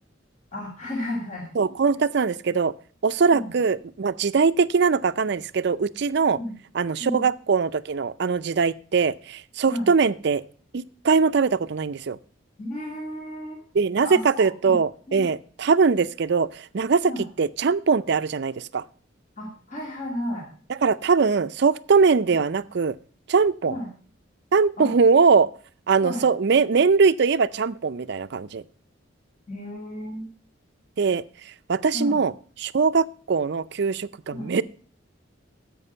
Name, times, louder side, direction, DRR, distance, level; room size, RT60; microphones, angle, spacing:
voice 1, 0.5-1.5 3.3-3.5 6.4-6.5 7.0-7.3 9.7-9.9 12.6-13.6 14.0-14.7 15.1-15.2 17.0-17.2 19.4-20.5 23.7-23.9 24.8-24.9 26.0-26.2 29.5-30.3 31.9-32.2 34.3-34.5, left 1 dB, 40° left, -1 dB, 2.3 m, -33 dB
voice 2, 1.6-2.7 3.0-6.4 6.7-10.4 10.7-12.2 13.7-17.1 17.4-18.8 20.7-23.0 23.3-23.8 24.5-25.5 25.9-28.6 31.0-31.2 31.7-32.3 32.6-34.6, right 5 dB, 60° right, 15 dB, 0.5 m, -21 dB
11.0 x 7.6 x 5.5 m, 0.42 s
head